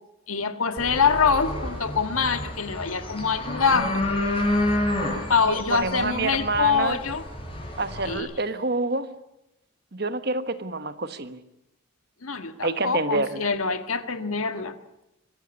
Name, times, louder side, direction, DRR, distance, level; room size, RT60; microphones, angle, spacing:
voice 1, 0.3-4.0 5.3-7.2 8.0-8.3 12.2-14.7, left 5 dB, 85° left, 9 dB, 1.7 m, -24 dB
sound 1, 0.8-8.2, left 1 dB, 25° left, 5.0 m, -29 dB
voice 2, 5.4-7.0 7.8-9.1 9.9-11.4 12.6-13.5, right 3 dB, 50° right, 11 dB, 1.2 m, -27 dB
25.0 x 15.0 x 9.8 m, 0.88 s
head